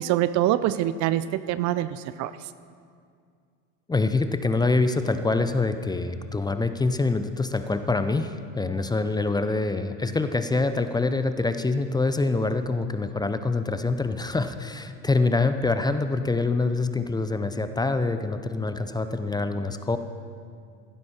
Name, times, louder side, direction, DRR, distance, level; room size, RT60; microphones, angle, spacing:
voice 1, 0.0-2.3, right 13 dB, 45° right, 15 dB, 0.5 m, -25 dB
voice 2, 3.9-20.0, left 3 dB, 10° left, 9 dB, 0.6 m, -25 dB
16.0 x 12.0 x 4.3 m, 2.2 s
hypercardioid pair, 85°, 40 cm